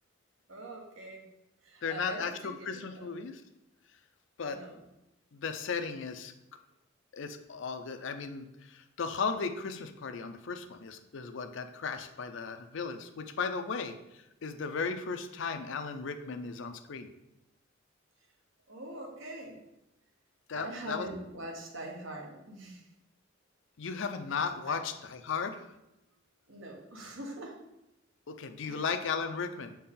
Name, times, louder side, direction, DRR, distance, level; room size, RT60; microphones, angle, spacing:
voice 1, 0.5-1.3 1.6-3.1 4.5-4.8 18.7-19.6 20.5-22.9 24.6-24.8 26.5-27.6 28.6-28.8, right 1 dB, 70° right, 1 dB, 1.2 m, -43 dB
voice 2, 1.8-3.4 4.4-4.6 5.3-6.3 7.1-17.1 20.5-21.1 23.8-25.7 28.3-29.8, left 5 dB, 65° left, 8 dB, 0.5 m, -36 dB
6.5 x 4.3 x 3.7 m, 0.91 s
head